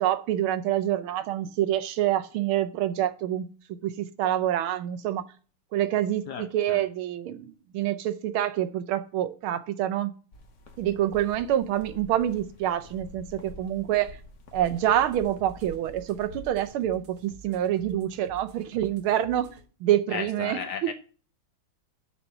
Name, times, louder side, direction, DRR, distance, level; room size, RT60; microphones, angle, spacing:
voice 1, 0.0-3.5 3.8-5.2 5.7-10.1 10.8-14.2 14.5-19.5 19.8-20.9, right 12 dB, 85° right, 1.6 m, -27 dB
voice 2, 6.3-6.8 20.1-20.9, left 7 dB, 70° left, 1.0 m, -35 dB
sound 1, 10.3-16.7, left 1 dB, 50° left, 1.1 m, -48 dB
sound 2, 14.6-19.6, right 4 dB, 55° right, 1.6 m, -51 dB
7.3 x 4.3 x 6.6 m
omnidirectional pair, 2.3 m